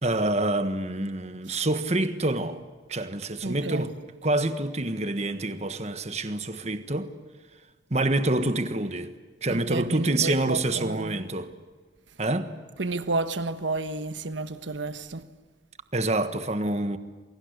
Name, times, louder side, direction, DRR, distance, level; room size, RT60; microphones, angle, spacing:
voice 1, 0.0-2.6 2.9-3.9 4.2-7.1 7.9-9.1 9.4-11.5 12.2-12.5 15.9-17.0, right 2 dB, 35° right, 1.5 m, -27 dB
voice 2, 3.4-3.8 9.5-11.2 12.8-15.2, right 2 dB, 75° right, 1.3 m, -31 dB
29.0 x 23.5 x 8.2 m
head